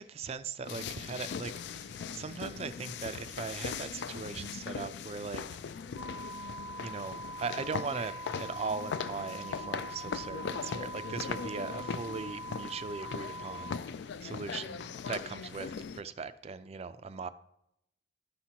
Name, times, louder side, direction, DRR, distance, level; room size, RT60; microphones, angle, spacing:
voice 1, 0.0-5.6 6.8-13.8 14.2-17.3, right 4 dB, 35° right, 12 dB, 0.3 m, -39 dB
sound 1, 0.7-16.0, left 6 dB, 65° left, 0.3 m, -40 dB
sound 2, 6.0-13.8, right 1 dB, 90° left, 0.8 m, -43 dB
12.0 x 5.8 x 2.8 m, 0.78 s
head